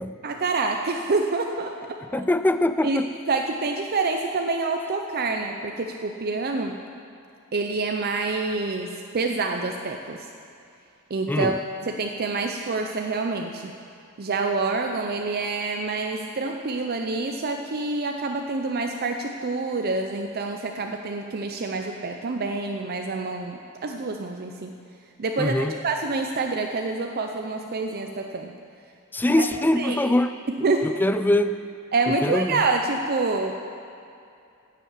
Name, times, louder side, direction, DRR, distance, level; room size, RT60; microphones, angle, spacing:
voice 1, 0.2-1.7 2.1-2.2 2.8-3.0 3.3-6.8 7.5-10.3 11.1-13.8 14.2-24.7 25.2-28.5 29.3-29.5 29.8-30.1 30.5-30.9 31.9-33.7, right 3 dB, 45° right, 3 dB, 0.6 m, -27 dB
voice 2, 2.1-3.1 11.3-11.6 25.4-25.8 29.1-30.3 30.8-31.6 32.2-32.6, left 1 dB, 10° left, 11 dB, 0.3 m, -23 dB
10.0 x 7.5 x 8.0 m, 2.5 s
head